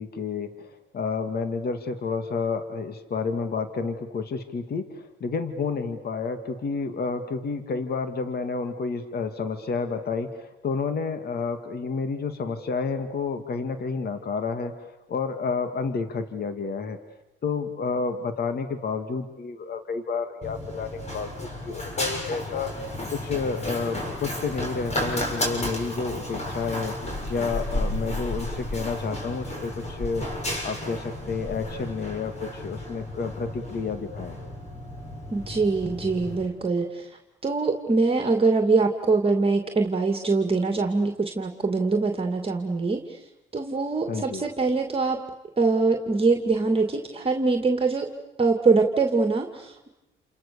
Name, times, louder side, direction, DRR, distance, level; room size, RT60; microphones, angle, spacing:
voice 1, 0.0-17.0 17.4-22.7 23.1-30.3 30.6-34.4 44.1-44.4, left 4 dB, 55° left, 8 dB, 2.4 m, -30 dB
Run, 20.4-36.5, left 1 dB, 35° left, 7.1 m, -33 dB
voice 2, 35.3-37.1 37.4-43.0 43.5-45.2 45.6-48.1 48.4-49.9, right 3 dB, 30° right, 5 dB, 2.5 m, -23 dB
29.5 x 28.5 x 7.1 m, 0.95 s
cardioid pair, 90°, 20 cm